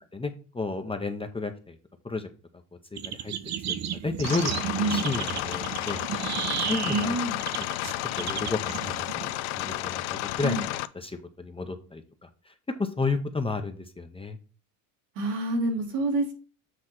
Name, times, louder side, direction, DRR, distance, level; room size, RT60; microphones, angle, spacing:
voice 1, 0.1-1.8 2.0-2.3 2.9-4.5 4.9-6.0 6.6-7.2 7.6-7.7 8.2-9.3 9.6-10.7 10.9-12.5 12.8-14.4, left 3 dB, 10° left, 5 dB, 0.7 m, -32 dB
sound 1, 3.0-9.9, right 9 dB, 35° right, 0.6 m, -33 dB
sound 2, 4.2-10.9, left 16 dB, 75° left, 0.6 m, -32 dB
voice 2, 6.9-7.3 10.4-10.6 15.1-16.3, right 2 dB, 85° right, 0 dB, 2.9 m, -27 dB
7.8 x 3.1 x 5.9 m, 0.37 s
cardioid pair, 125°, 47 cm